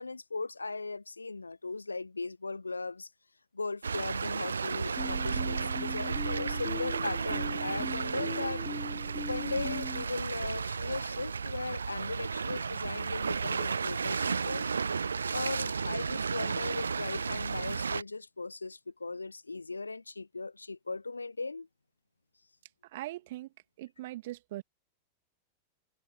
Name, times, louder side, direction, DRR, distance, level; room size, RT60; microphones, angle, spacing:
voice 1, 0.0-3.1 3.5-8.6 9.1-14.7 15.3-21.7, left 3 dB, 80° left, 0.5 m, -38 dB
sound 1, 3.8-18.0, right 5 dB, 75° right, 0.5 m, -33 dB
sound 2, 5.0-10.0, left 5 dB, 15° left, 0.7 m, -41 dB
voice 2, 22.9-23.5 23.8-24.6, right 16 dB, 55° right, 2.6 m, -40 dB
figure-of-eight pair, 90°, 0 cm